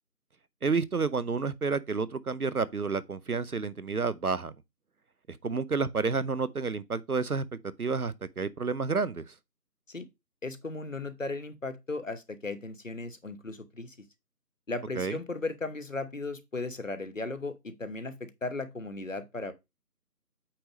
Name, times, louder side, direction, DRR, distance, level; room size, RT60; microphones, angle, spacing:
voice 1, 0.6-4.5 5.3-7.4 7.8-9.3 15.0-15.2, right 4 dB, 65° right, 0.7 m, -30 dB
voice 2, 10.4-14.0 14.7-19.5, left 3 dB, 50° left, 1.1 m, -36 dB
8.6 x 3.3 x 5.2 m
figure-of-eight pair, 180°, 48 cm